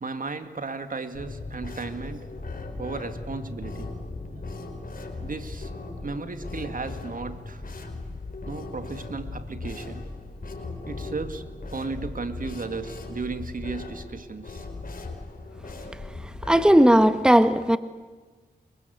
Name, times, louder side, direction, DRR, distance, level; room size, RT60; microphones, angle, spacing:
voice 1, 0.0-2.4 2.8-4.0 4.4-4.5 5.2-5.7 6.0-7.6 8.5-10.1 10.9-14.6, right 4 dB, 55° right, 9 dB, 2.2 m, -35 dB
sound 1, 1.1-16.7, left 2 dB, 55° left, 4.8 m, -38 dB
voice 2, 16.2-17.8, equal, 5° right, 10 dB, 1.6 m, -18 dB
29.0 x 24.0 x 8.2 m, 1.3 s
cardioid pair, 50°, 17 cm